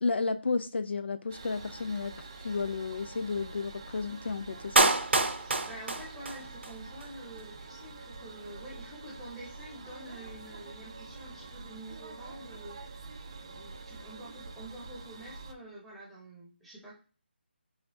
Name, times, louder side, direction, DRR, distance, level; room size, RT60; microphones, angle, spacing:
voice 1, 0.0-2.2 2.4-4.9, left 4 dB, 70° left, 0.4 m, -32 dB
sound 1, 1.3-15.5, right 3 dB, 25° right, 0.4 m, -46 dB
Clapping, 4.8-6.7 7.0-7.1, right 3 dB, 75° right, 0.7 m, -26 dB
voice 2, 5.4-13.1 13.4-16.9, right 1 dB, ahead, 1.0 m, -47 dB
5.4 x 3.5 x 2.7 m
figure-of-eight pair, 170°, 6 cm